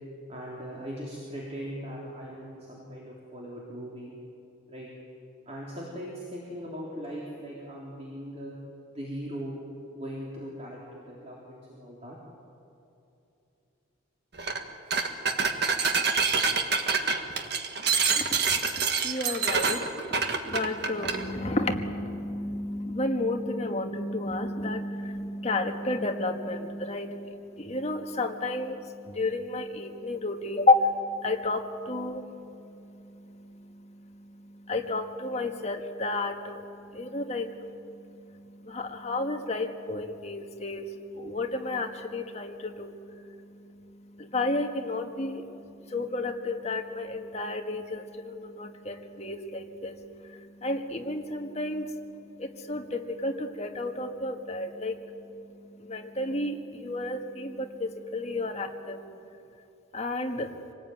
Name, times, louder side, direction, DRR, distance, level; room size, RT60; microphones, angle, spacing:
voice 1, 0.3-4.1 4.7-4.9 5.5-8.6 8.9-9.6 9.9-12.2, equal, 30° right, -4 dB, 3.6 m, -39 dB
sound 1, 14.4-14.6 14.9-21.2, right 5 dB, 50° right, 1.7 m, -26 dB
voice 2, 18.8-19.8 20.5-59.1 59.9-60.5, left 2 dB, 30° left, 4 dB, 1.6 m, -32 dB
26.0 x 19.0 x 9.3 m, 2.7 s
head